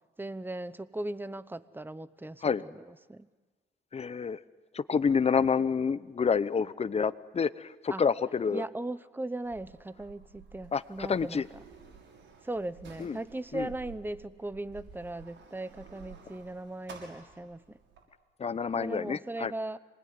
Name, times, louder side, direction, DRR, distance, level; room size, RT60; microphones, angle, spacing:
voice 1, 0.2-3.3 7.9-8.0 8.5-11.4 12.4-17.8 18.8-19.8, right 2 dB, 10° right, 16 dB, 0.9 m, -38 dB
voice 2, 3.9-4.4 4.7-8.6 10.7-11.5 13.0-13.2 13.5-13.7 18.4-19.5, left 6 dB, 30° left, 16 dB, 0.8 m, -28 dB
Sliding door, 9.4-18.0, right 6 dB, 65° right, 6.7 m, -52 dB
26.5 x 20.0 x 9.6 m, 1.3 s
cardioid pair, 90°, 20 cm